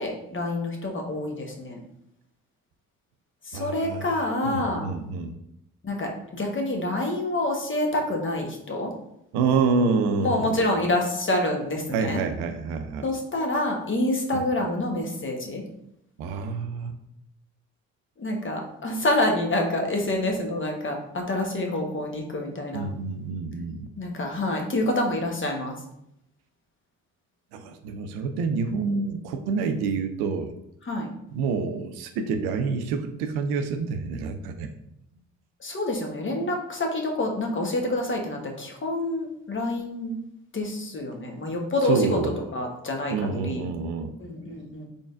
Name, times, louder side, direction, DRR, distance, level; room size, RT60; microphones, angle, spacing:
voice 1, 0.0-1.8 3.4-4.9 5.8-8.9 10.2-12.2 13.0-15.6 18.2-22.8 24.0-25.8 30.8-31.1 35.6-40.2 40.5-42.2 42.5-43.7 44.2-44.9, left 1 dB, 30° left, 1 dB, 1.1 m, -27 dB
voice 2, 3.5-4.1 4.4-5.3 9.3-10.6 11.9-13.1 16.2-16.9 22.7-23.9 27.5-30.5 31.3-34.7 41.9-42.4 43.1-44.1, right 5 dB, 65° right, 8 dB, 0.5 m, -27 dB
3.8 x 3.5 x 2.5 m, 0.77 s
hypercardioid pair, 45°, 41 cm